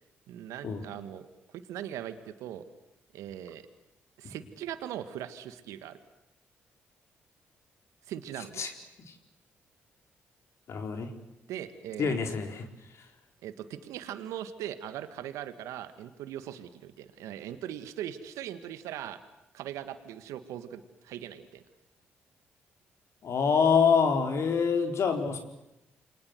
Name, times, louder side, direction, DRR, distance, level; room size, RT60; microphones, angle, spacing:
voice 1, 0.3-1.3 1.5-2.6 3.1-3.6 4.2-6.0 8.1-8.6 11.5-12.1 13.4-19.2 19.5-21.6, right 11 dB, 80° right, 11 dB, 1.8 m, -40 dB
voice 2, 10.7-11.1 12.0-12.7 23.2-25.4, left 6 dB, 60° left, 6 dB, 4.3 m, -25 dB
29.0 x 24.0 x 8.0 m, 0.88 s
hypercardioid pair, 50°, 5 cm